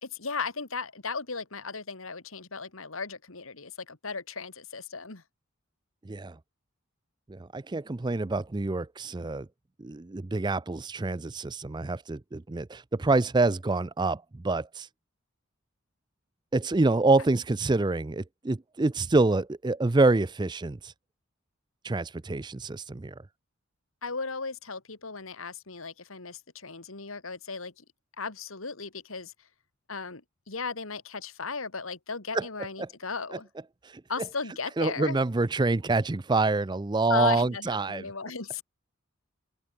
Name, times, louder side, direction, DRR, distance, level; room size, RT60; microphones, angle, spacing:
voice 1, 0.0-5.2 24.0-27.8 28.2-29.3 29.9-33.5 34.1-35.2 37.1-38.6, left 4 dB, 75° left, 2.3 m, -36 dB
voice 2, 7.3-9.5 9.8-14.9 16.5-20.9 21.8-23.1 32.3-32.5 32.8-32.9 33.8-34.0 34.8-38.0, right 3 dB, 20° right, 0.4 m, -26 dB
head